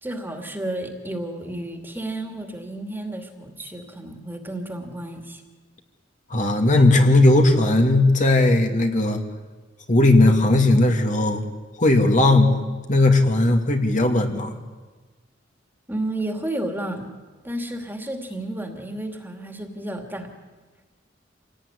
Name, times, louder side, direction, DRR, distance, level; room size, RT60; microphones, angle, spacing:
voice 1, 0.0-5.4 15.9-17.1 17.4-20.3, right 1 dB, 10° right, 4 dB, 2.6 m, -31 dB
voice 2, 6.3-9.2 9.9-11.4 11.8-12.6 12.9-14.6, left 2 dB, 45° left, 3 dB, 2.4 m, -17 dB
27.5 x 18.0 x 10.0 m, 1.3 s
head